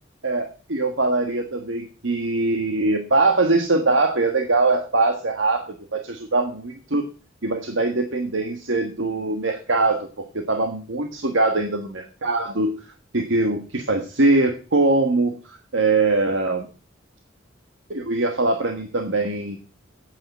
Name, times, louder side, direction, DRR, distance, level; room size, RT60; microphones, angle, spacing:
voice 1, 0.2-7.1 7.4-10.1 10.3-12.7 13.1-16.7 17.9-19.6, right 2 dB, 75° right, 5 dB, 1.6 m, -22 dB
8.9 x 8.8 x 7.3 m, 0.36 s
head